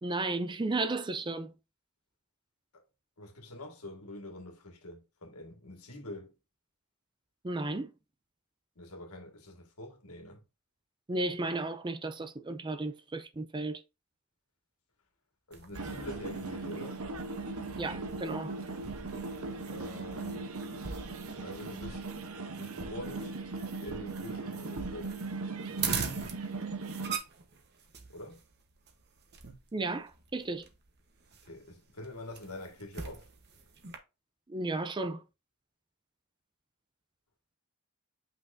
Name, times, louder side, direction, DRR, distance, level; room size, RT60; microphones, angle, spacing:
voice 1, 0.0-1.5 7.4-7.9 11.1-13.8 17.8-18.5 29.7-30.7 34.5-35.2, right 2 dB, 20° right, 0.4 m, -34 dB
voice 2, 3.2-6.3 8.8-10.4 15.5-17.0 19.7-20.6 21.4-22.0 22.5-23.3 23.8-25.2 28.1-28.4 31.5-33.3, left 1 dB, 85° left, 1.9 m, -45 dB
sound 1, 15.5-34.0, right 6 dB, 50° right, 1.1 m, -43 dB
sound 2, 15.7-27.2, right 3 dB, 70° right, 0.9 m, -39 dB
7.6 x 5.7 x 2.6 m
head